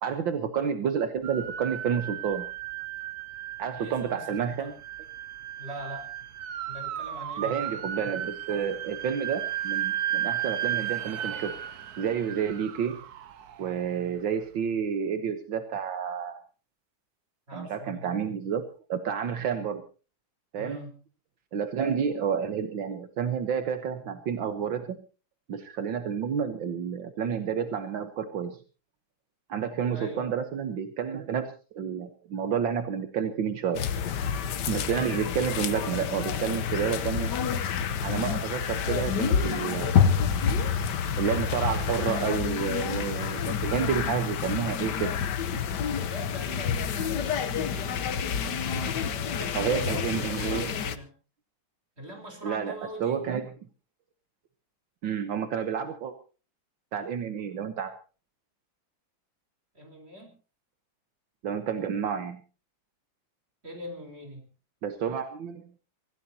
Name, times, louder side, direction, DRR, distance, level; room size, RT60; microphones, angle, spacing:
voice 1, 0.0-2.5 3.6-4.7 7.4-11.6 12.0-13.0 13.6-16.4 17.5-18.6 18.9-19.8 20.5-20.8 21.5-25.0 25.5-28.6 29.5-33.8 34.7-37.3 38.0-40.0 41.2-45.1 49.5-50.7 52.4-52.7 53.0-53.5 55.0-56.1 56.9-57.9 61.4-62.4 64.8-65.7, right 7 dB, 75° right, 8 dB, 1.9 m, -30 dB
sound 1, 1.2-14.3, right 11 dB, 60° right, 1.3 m, -35 dB
voice 2, 3.8-4.7 5.6-6.1 6.7-7.6 17.5-18.2 20.5-21.0 29.9-30.4 45.9-48.0 48.6-51.1 52.0-53.2 59.7-60.3 63.6-64.5, equal, 30° right, 4 dB, 4.7 m, -42 dB
sound 2, 33.7-51.0, left 7 dB, 65° left, 1.5 m, -28 dB
25.0 x 16.5 x 2.8 m, 0.35 s
omnidirectional pair, 2.1 m